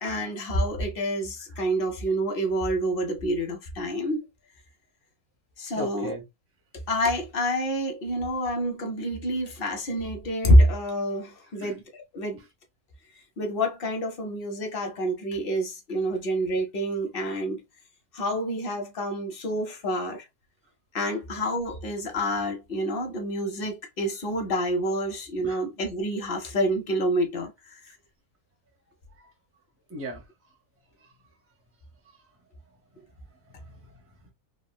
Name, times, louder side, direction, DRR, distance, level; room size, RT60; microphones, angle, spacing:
voice 1, 0.0-4.3 5.6-6.1 6.9-11.8 12.1-12.4 13.4-17.6 18.1-20.2 20.9-27.5, equal, 45° left, 0.8 m, -27 dB
voice 2, 5.7-6.2 11.5-11.8 12.4-12.5 16.1-16.2 25.4-25.7 29.1-29.3 29.9-30.5 31.0-31.1 32.0-32.3 32.9-34.3, right 1 dB, 15° right, 0.4 m, -41 dB
3.7 x 2.0 x 2.2 m
omnidirectional pair, 1.6 m